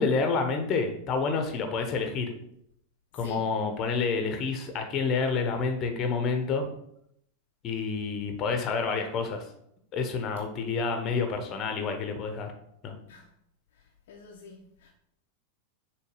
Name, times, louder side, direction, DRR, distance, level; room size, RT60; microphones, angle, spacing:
voice 1, 0.0-2.3 3.1-6.7 7.6-9.4 9.9-12.5 12.8-12.9, left 4 dB, 30° left, 1.0 m, -28 dB
voice 2, 3.1-3.5 13.0-13.3 13.7-14.9, left 2 dB, 55° left, 0.7 m, -47 dB
6.7 x 3.1 x 4.8 m
figure-of-eight pair, 90°, 0 cm